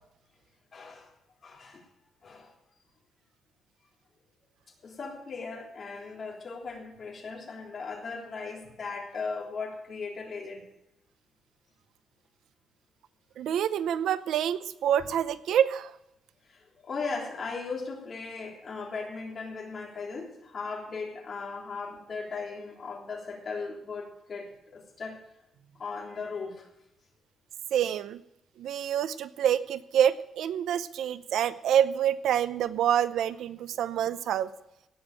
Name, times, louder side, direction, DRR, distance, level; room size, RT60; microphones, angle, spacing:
voice 1, 0.7-1.1 1.4-1.8 2.2-2.5 4.8-10.6 16.5-25.2 25.8-26.7, left 4 dB, 40° left, -1 dB, 3.4 m, -38 dB
voice 2, 13.4-15.9 27.7-28.2 28.6-34.5, right 9 dB, 85° right, 14 dB, 0.7 m, -27 dB
17.5 x 6.3 x 8.9 m, 0.85 s
cardioid pair, 140°, 0 cm